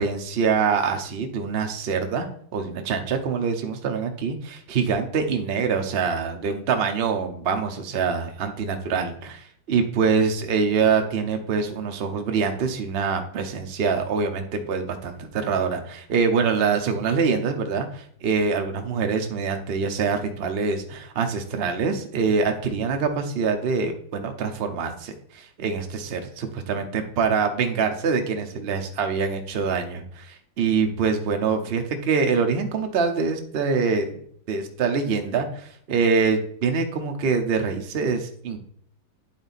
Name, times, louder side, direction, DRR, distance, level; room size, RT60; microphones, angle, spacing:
voice 1, 0.0-2.3 2.5-34.2 34.5-38.6, right 5 dB, 65° right, 5 dB, 0.6 m, -25 dB
10.0 x 3.9 x 4.1 m, 0.62 s
omnidirectional pair, 2.2 m